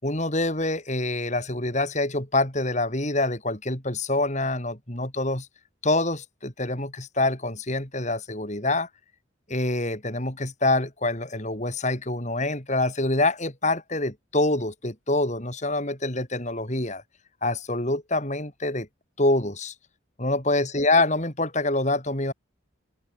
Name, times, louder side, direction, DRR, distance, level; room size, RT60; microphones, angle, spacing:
voice 1, 0.0-5.5 5.8-8.9 9.5-17.0 17.4-18.9 19.2-19.7 20.2-22.3, left 2 dB, 35° left, 4.4 m, -26 dB
open air
head